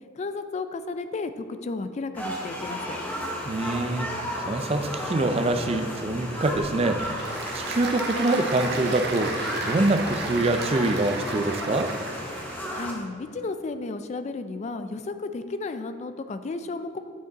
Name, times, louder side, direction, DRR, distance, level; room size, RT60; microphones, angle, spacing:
voice 1, 0.2-3.0 12.7-17.0, left 3 dB, 35° left, 10 dB, 0.3 m, -33 dB
sound 1, 2.1-12.9, equal, 10° left, 0.9 m, -34 dB
voice 2, 3.5-4.1 4.4-9.3 9.6-11.9, right 2 dB, 30° right, 8 dB, 0.4 m, -25 dB
Applause / Crowd, 6.7-12.8, right 3 dB, 55° right, 0.9 m, -35 dB
9.1 x 5.1 x 4.0 m, 2.2 s
head